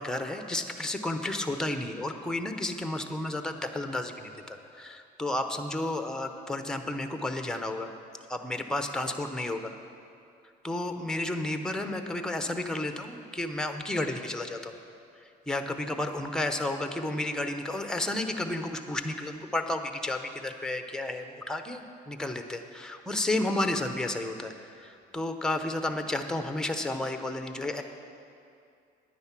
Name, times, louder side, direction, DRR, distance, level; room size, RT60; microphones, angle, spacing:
voice 1, 0.0-7.9 8.3-9.7 10.6-14.7 15.2-27.8, left 1 dB, 5° left, 6 dB, 0.8 m, -32 dB
10.0 x 9.5 x 5.9 m, 2.5 s
cardioid pair, 110°, 17 cm